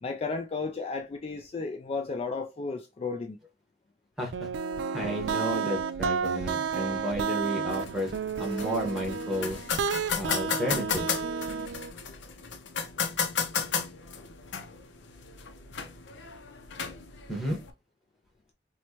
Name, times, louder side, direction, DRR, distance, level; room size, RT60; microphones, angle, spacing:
voice 1, 0.0-3.4, left 4 dB, 35° left, 0.3 m, -33 dB
voice 2, 4.2-4.5 4.9-8.1 8.4-9.6 10.1-11.1 17.3-17.6, equal, ahead, 1.1 m, -32 dB
sound 1, 4.3-11.9, right 5 dB, 80° right, 0.3 m, -31 dB
sound 2, 7.7-17.7, left 6 dB, 85° left, 0.5 m, -34 dB
4.4 x 2.2 x 2.8 m
head